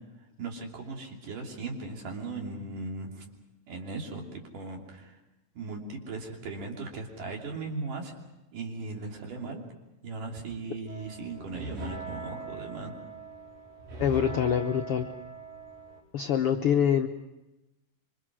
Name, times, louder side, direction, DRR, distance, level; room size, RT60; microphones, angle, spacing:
voice 1, 0.4-3.3 3.7-5.1 5.6-8.1 8.5-9.6 10.0-12.9, right 3 dB, 70° right, 1 dB, 4.6 m, -38 dB
sound 1, 10.9-16.0, right 3 dB, 90° right, 6.8 m, -41 dB
voice 2, 14.0-15.1 16.1-17.1, left 8 dB, 80° left, 5 dB, 1.2 m, -25 dB
26.5 x 25.0 x 6.2 m, 1.0 s
omnidirectional pair, 3.9 m